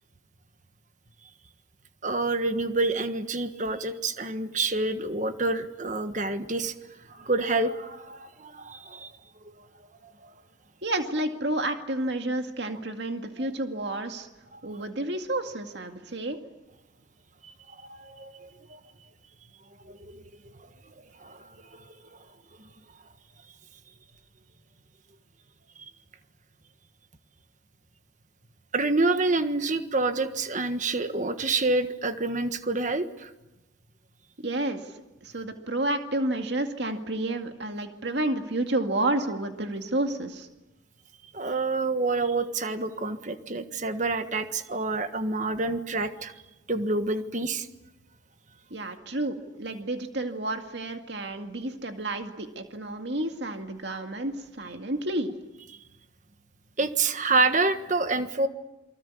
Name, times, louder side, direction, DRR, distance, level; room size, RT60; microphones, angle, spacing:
voice 1, 2.0-6.7 7.1-9.1 9.4-9.5 10.2-10.3 14.5-14.6 17.4-18.8 19.8-20.2 21.2-21.9 28.7-33.3 41.3-46.3 46.7-47.7 56.8-58.5, right 3 dB, 40° right, 9 dB, 1.5 m, -28 dB
voice 2, 10.8-14.3 14.6-16.4 34.4-34.8 35.2-40.5 48.7-55.3, right 1 dB, 60° right, 5 dB, 2.2 m, -30 dB
28.0 x 24.5 x 8.5 m, 0.99 s
head